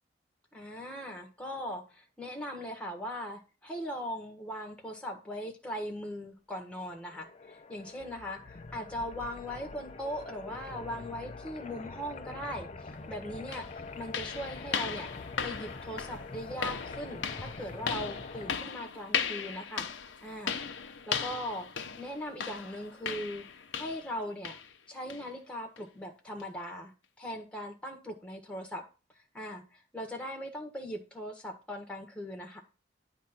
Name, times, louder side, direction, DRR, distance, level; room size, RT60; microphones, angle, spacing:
voice 1, 0.5-15.1 15.4-19.9 20.2-21.7 22.0-23.4 23.7-24.5 24.9-28.8 29.3-32.6, equal, 5° left, 2 dB, 1.4 m, -40 dB
sound 1, 7.0-18.6, left 3 dB, 35° left, 0.7 m, -45 dB
sound 2, 12.9-13.0 13.5-24.2 24.4-24.7 25.1-25.3 25.8-25.9 26.4-26.5, left 7 dB, 80° left, 0.8 m, -37 dB
9.5 x 3.3 x 5.9 m, 0.32 s
head